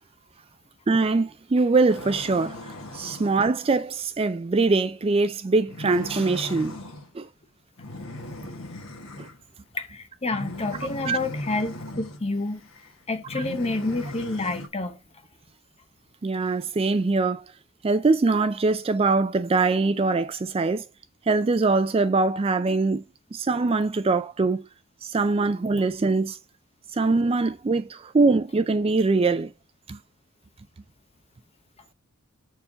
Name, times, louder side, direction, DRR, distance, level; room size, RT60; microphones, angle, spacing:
voice 1, 0.9-2.6 2.9-6.8 7.1-7.3 9.2-9.3 11.1-11.2 16.2-17.4 17.8-20.8 21.3-23.0 23.3-24.6 25.1-26.4 26.9-29.5 29.9-30.0, right 3 dB, 25° right, 0.3 m, -23 dB
sound 1, 1.9-3.4 5.7-7.1 7.8-9.4 10.3-12.2 12.6-12.9 13.3-14.7, left 1 dB, 65° left, 1.6 m, -38 dB
voice 2, 9.7-12.6 13.1-15.0, left 2 dB, 25° left, 0.8 m, -29 dB
7.1 x 4.6 x 3.9 m
head